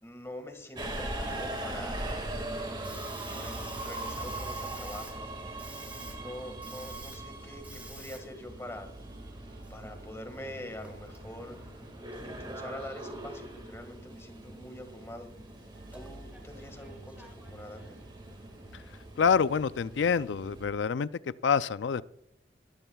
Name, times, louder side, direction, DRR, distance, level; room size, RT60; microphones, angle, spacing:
voice 1, 0.0-2.0 3.1-5.3 6.2-8.9 9.7-11.6 12.2-15.3 15.9-18.0, left 1 dB, 15° left, 6 dB, 1.8 m, -44 dB
Subway metro underground, 0.8-20.7, right 1 dB, 25° right, 1.9 m, -41 dB
Hiss, 2.0-19.0, right 2 dB, 10° right, 1.7 m, -53 dB
sound 1, 3.3-8.3 8.6-14.0 14.7-20.7, right 2 dB, 75° right, 1.4 m, -54 dB
voice 2, 19.2-21.1 21.4-22.0, left 6 dB, 80° left, 16 dB, 0.4 m, -26 dB
22.0 x 13.5 x 2.3 m, 0.75 s
head